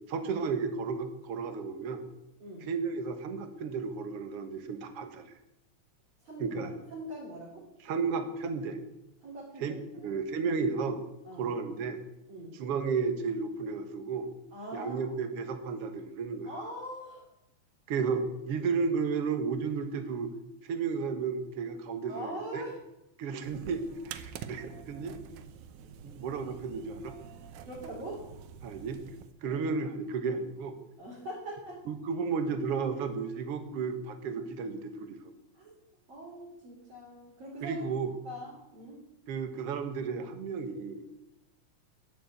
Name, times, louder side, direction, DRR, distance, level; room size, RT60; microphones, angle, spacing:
voice 1, 0.1-2.0 2.7-5.2 6.4-6.7 7.9-8.8 9.6-9.8 10.0-11.0 11.4-12.0 12.6-14.3 14.7-16.5 17.9-20.3 20.6-22.6 23.2-25.1 26.0-27.1 28.6-29.0 29.4-30.7 31.9-35.3 37.6-38.1 39.3-41.0, right 5 dB, 60° right, 8 dB, 2.1 m, -33 dB
voice 2, 6.2-6.6 6.9-7.6 9.2-10.1 11.2-11.5 12.3-12.5 14.5-15.2 16.4-17.2 22.1-22.8 27.6-28.2 29.4-29.7 31.0-31.8 35.5-35.7 36.1-37.8 38.2-39.0, right 1 dB, 40° right, -5 dB, 4.3 m, -42 dB
sound 1, 23.4-29.3, right 8 dB, 85° right, 2.3 m, -47 dB
11.0 x 11.0 x 8.2 m, 0.90 s
omnidirectional pair, 3.3 m